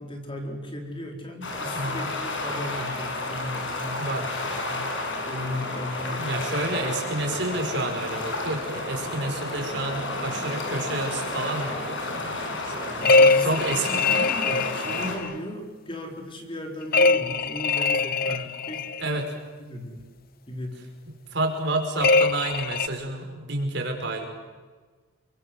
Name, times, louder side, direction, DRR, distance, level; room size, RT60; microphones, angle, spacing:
voice 1, 0.0-4.2 4.6-4.9 5.2-6.4 7.2-7.6 12.9-19.2 19.6-20.0 20.5-20.8, left 1 dB, 25° left, 3 dB, 3.9 m, -36 dB
sound 1, 1.4-15.2, left 2 dB, 65° left, 6.6 m, -31 dB
voice 2, 1.7-2.1 4.0-4.2 5.2-5.4 6.2-12.9 13.4-13.9 14.9-15.0 18.3-18.5 19.0-19.3 21.1-24.3, right 2 dB, 55° right, 3 dB, 5.8 m, -30 dB
sound 2, 13.0-15.3 16.9-19.0 22.0-22.9, left 3 dB, 45° left, 1.1 m, -22 dB
30.0 x 24.0 x 7.9 m, 1.4 s
head